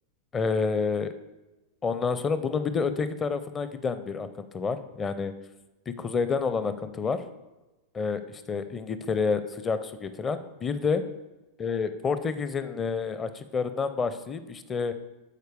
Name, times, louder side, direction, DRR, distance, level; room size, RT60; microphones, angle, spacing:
voice 1, 0.3-1.1 1.8-5.4 5.9-7.2 7.9-11.0 11.6-14.9, left 5 dB, 20° left, 12 dB, 0.7 m, -29 dB
13.5 x 4.7 x 4.8 m, 1.0 s
figure-of-eight pair, 90°, 0 cm